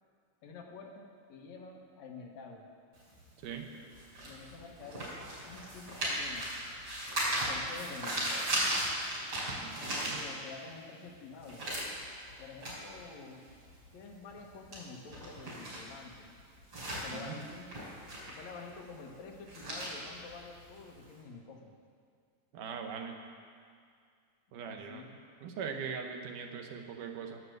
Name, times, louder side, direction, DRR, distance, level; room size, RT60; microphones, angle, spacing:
voice 1, 0.4-2.7 4.2-5.2 5.4-6.5 7.5-8.6 9.8-11.6 12.4-13.5 13.9-16.3 16.9-17.7 18.3-21.7 24.6-25.2, left 4 dB, 65° left, 0 dB, 2.5 m, -48 dB
sound 1, 2.9-10.7 11.0-21.1, right 1 dB, 30° right, 4.8 m, -37 dB
voice 2, 9.6-10.2 17.1-17.4 22.5-23.2 24.5-25.0 25.4-27.4, right 6 dB, 80° right, 4 dB, 2.6 m, -41 dB
10.5 x 9.8 x 7.9 m, 2.2 s
omnidirectional pair, 3.7 m